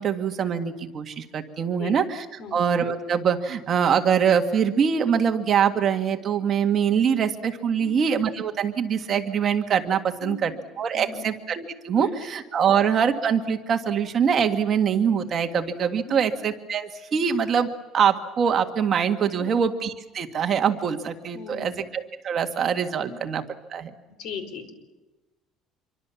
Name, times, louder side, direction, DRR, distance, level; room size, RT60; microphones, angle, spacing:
voice 1, 0.0-2.3 2.5-10.5 10.8-23.4 23.7-23.9, right 7 dB, 35° right, 5 dB, 1.8 m, -24 dB
voice 2, 1.8-2.1 2.4-2.6 7.8-8.1 10.2-10.6 10.9-11.2 11.9-12.1 12.7-12.8 16.1-16.3 19.4-19.6 21.3-21.9 23.1-23.2 24.2-24.7, left 6 dB, 60° left, 9 dB, 5.1 m, -38 dB
27.0 x 24.0 x 7.2 m, 1.1 s
cardioid pair, 160°, 0 cm